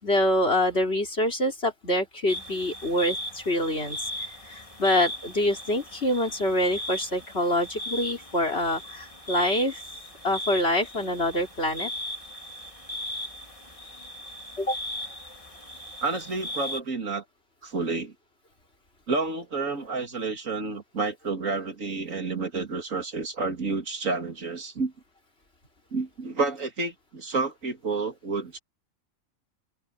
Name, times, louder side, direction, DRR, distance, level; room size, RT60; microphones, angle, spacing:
voice 1, 0.0-9.8 10.2-11.9 14.6-14.8, left 1 dB, 50° left, 4.1 m, -26 dB
sound 1, 2.3-16.8, equal, 25° left, 3.4 m, -38 dB
voice 2, 16.0-17.2 17.6-18.1 19.1-24.9 25.9-28.6, right 3 dB, 90° right, 2.9 m, -30 dB
omnidirectional pair, 1.3 m